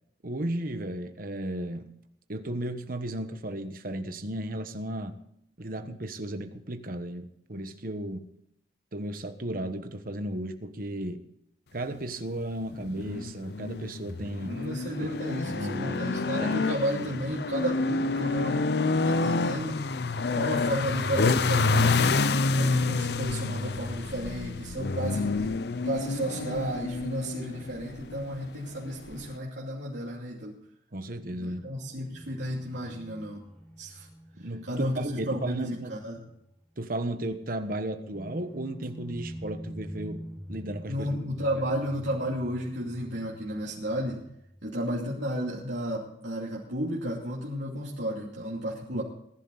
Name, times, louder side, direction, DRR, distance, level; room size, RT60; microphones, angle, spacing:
voice 1, 0.2-1.9 2.3-5.2 5.6-8.3 8.9-11.3 11.7-14.5 15.4-16.0 16.4-16.5 30.9-31.6 34.4-36.0 36.8-41.1 48.9-49.0, right 1 dB, 50° right, 8 dB, 1.3 m, -34 dB
sound 1, 12.7-29.4, left 3 dB, 65° left, 0.7 m, -28 dB
voice 2, 14.4-18.7 19.0-19.8 20.3-22.0 22.5-25.5 25.8-30.5 31.4-33.4 33.8-34.1 34.6-36.2 40.9-44.2 44.6-49.0, equal, 85° right, -5 dB, 2.8 m, -33 dB
sound 2, 31.1-36.5 36.8-36.9 38.1-44.7, equal, 5° left, 5.3 m, -45 dB
19.5 x 11.5 x 4.1 m, 0.76 s
head